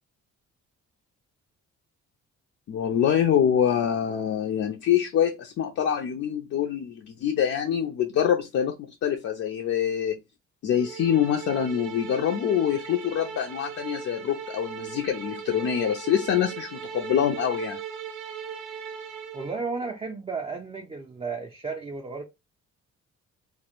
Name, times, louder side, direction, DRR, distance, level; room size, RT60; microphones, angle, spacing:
voice 1, 2.7-8.8 9.0-10.2 10.6-17.8, left 9 dB, 55° left, 0.4 m, -25 dB
sound 1, 10.7-19.6, right 7 dB, 85° right, 0.5 m, -38 dB
voice 2, 19.3-22.2, right 4 dB, 20° right, 0.4 m, -33 dB
2.1 x 2.0 x 2.9 m
cardioid pair, 90°, 30 cm